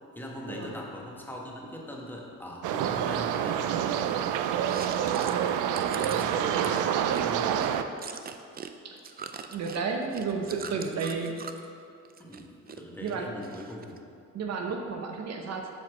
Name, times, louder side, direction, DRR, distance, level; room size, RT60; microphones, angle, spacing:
voice 1, 0.1-4.1 5.2-5.5 5.9-7.8 10.4-10.7 12.2-14.0, equal, 5° left, -2 dB, 1.4 m, -41 dB
sound 1, 2.6-7.8, right 9 dB, 85° right, 0.5 m, -27 dB
Chewing mastication, 4.6-8.7 9.0-11.6 12.0-12.8 13.1-14.0, right 6 dB, 30° right, 0.4 m, -42 dB
voice 2, 9.5-11.4 13.0-13.4 14.3-15.7, right 5 dB, 60° right, 3 dB, 0.8 m, -32 dB
7.8 x 4.3 x 6.1 m, 2.5 s
cardioid pair, 90°, 30 cm